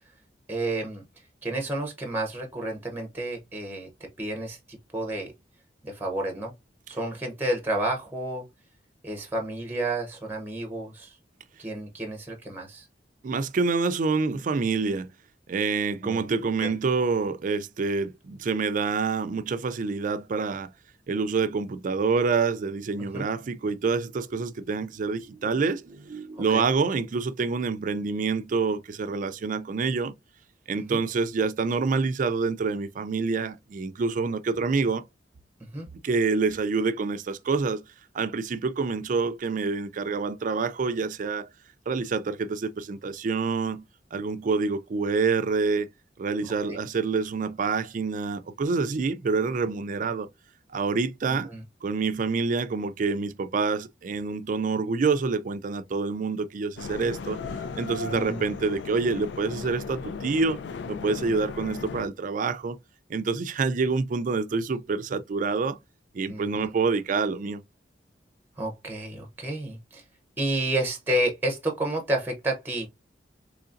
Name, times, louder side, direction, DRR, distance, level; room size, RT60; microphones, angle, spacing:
voice 1, 0.5-1.0 1.4-3.9 4.2-4.6 4.9-5.3 5.8-6.5 6.9-8.4 9.0-11.2 11.6-12.9 16.0-16.3 16.6-16.7 23.1-23.3 26.5-26.6 30.7-31.0 35.7-35.9 46.7-46.8 51.3-51.6 58.0-58.4 66.3-66.7 68.6-70.0 70.4-72.9, right 1 dB, 10° right, 0.7 m, -30 dB
voice 2, 13.2-15.1 15.5-20.7 21.1-30.1 30.7-35.0 36.0-37.8 38.1-41.5 41.9-43.8 44.1-45.9 46.2-50.3 50.7-51.5 51.8-57.4 57.8-60.6 60.9-62.8 63.1-65.8 66.1-67.6, right 4 dB, 50° right, 0.4 m, -27 dB
sound 1, 56.8-62.1, left 4 dB, 85° left, 0.4 m, -36 dB
3.9 x 3.1 x 2.5 m
head